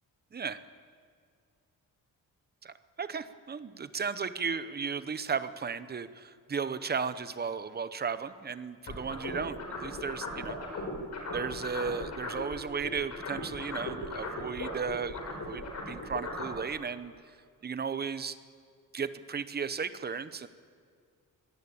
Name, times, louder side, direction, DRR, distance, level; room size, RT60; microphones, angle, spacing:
voice 1, 2.6-10.6 11.3-17.1 17.6-18.4 18.9-20.5, right 6 dB, 30° right, 12 dB, 0.9 m, -35 dB
sound 1, 8.9-12.5 12.8-16.6, left 3 dB, 55° left, 5.4 m, -37 dB
23.0 x 19.0 x 8.7 m, 2.1 s
wide cardioid pair, 175°, 33 cm